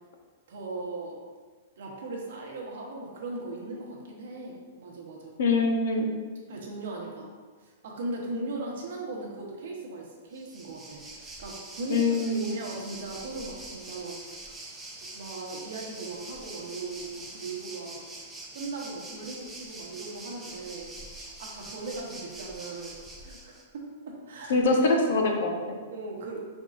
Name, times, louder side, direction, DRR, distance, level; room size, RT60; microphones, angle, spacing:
voice 1, 0.5-1.2 1.8-5.4 6.5-7.3 7.6-14.2 15.1-18.1 18.5-20.9 21.4-24.6 25.9-26.4, right 2 dB, 65° right, -1 dB, 1.0 m, -38 dB
voice 2, 5.4-6.1 11.9-12.4 24.5-25.8, left 3 dB, 65° left, 2 dB, 0.7 m, -24 dB
Waves surf, 10.3-23.6, right 2 dB, 5° right, 0.4 m, -44 dB
5.4 x 3.6 x 2.5 m, 1.5 s
supercardioid pair, 175°, 0 cm